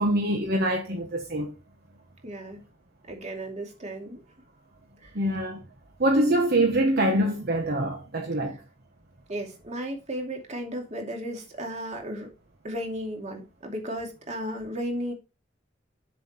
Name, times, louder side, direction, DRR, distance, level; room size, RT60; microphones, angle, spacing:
voice 1, 0.0-1.5 5.1-5.6 6.0-8.6, right 1 dB, 55° right, 1.4 m, -24 dB
voice 2, 2.2-2.6 3.1-4.2 5.0-5.1 9.3-12.3 12.6-15.1, equal, 35° right, 2.6 m, -34 dB
7.6 x 6.8 x 4.4 m
head